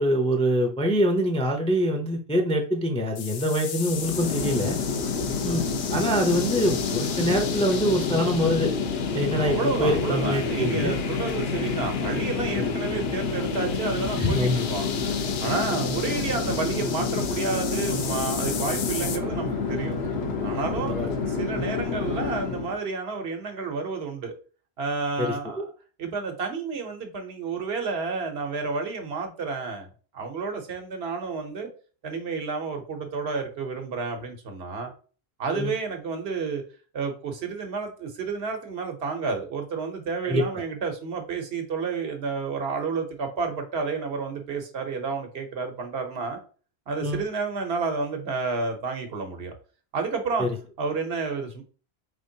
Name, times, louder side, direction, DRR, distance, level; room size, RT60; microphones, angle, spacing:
voice 1, 0.0-4.8 5.4-5.6 5.9-8.7 9.1-11.0 12.6-12.8 14.2-14.7 20.9-21.1 21.5-21.6 25.2-25.6 35.5-35.7 40.3-40.4 47.0-47.2 50.4-50.6, equal, 10° left, 0.4 m, -24 dB
sound 1, 3.2-19.2, left 7 dB, 60° left, 0.7 m, -36 dB
Chatter / Fixed-wing aircraft airplane, 3.9-22.8, left 4 dB, 85° left, 1.1 m, -28 dB
voice 2, 9.3-14.9 15.4-20.0 20.4-21.0 21.3-24.3 24.8-25.6 26.0-29.9 30.1-31.7 32.0-34.9 35.4-36.6 36.9-46.4 46.9-49.5 49.9-50.5 50.8-51.6, right 4 dB, 75° right, 1.1 m, -30 dB
4.4 x 3.3 x 2.7 m
omnidirectional pair, 1.1 m